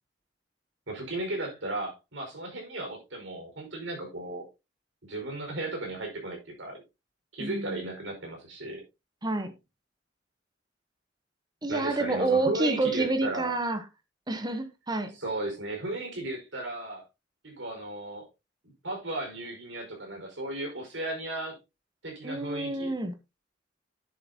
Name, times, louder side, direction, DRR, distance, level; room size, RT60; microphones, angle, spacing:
voice 1, 0.9-4.4 5.0-6.8 7.3-8.8 11.7-13.5 15.1-17.0 17.4-18.3 18.8-21.5 22.0-22.9, right 2 dB, 90° right, 5.1 m, -35 dB
voice 2, 7.4-7.9 9.2-9.5 11.6-13.8 14.3-15.1 22.2-23.2, right 2 dB, 20° right, 1.0 m, -28 dB
10.5 x 7.8 x 2.8 m
head